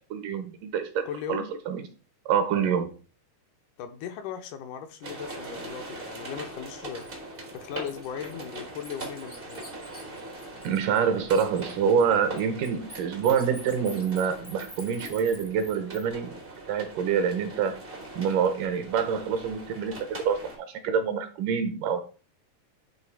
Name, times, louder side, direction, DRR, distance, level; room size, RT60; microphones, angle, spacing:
voice 1, 0.1-1.0 1.3-1.8 2.3-2.9 10.6-16.3 16.7-17.7 18.2-22.0, right 7 dB, 80° right, 2.5 m, -26 dB
voice 2, 1.1-1.5 3.8-7.1 7.5-9.6, left 8 dB, 80° left, 2.1 m, -38 dB
sound 1, 5.0-20.6, right 2 dB, 65° right, 0.5 m, -41 dB
Bird, 7.0-7.1 7.5-11.0 11.3-16.0, equal, 20° left, 0.4 m, -47 dB
9.6 x 3.3 x 4.7 m
omnidirectional pair, 3.8 m